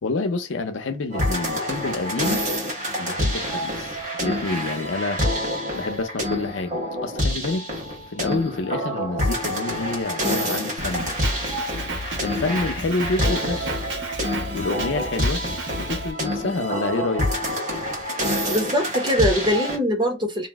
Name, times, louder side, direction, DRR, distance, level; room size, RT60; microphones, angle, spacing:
voice 1, 0.0-2.4 3.0-5.2 5.8-7.7 8.1-11.2 12.2-13.7 14.5-15.4 15.8-17.3, left 3 dB, 85° left, 0.5 m, -28 dB
sound 1, 1.1-19.8, equal, 40° right, 1.1 m, -27 dB
Drum kit, 10.8-16.1, right 1 dB, 70° right, 0.9 m, -32 dB
voice 2, 18.5-20.5, equal, 25° right, 0.6 m, -22 dB
2.6 x 2.0 x 3.4 m
head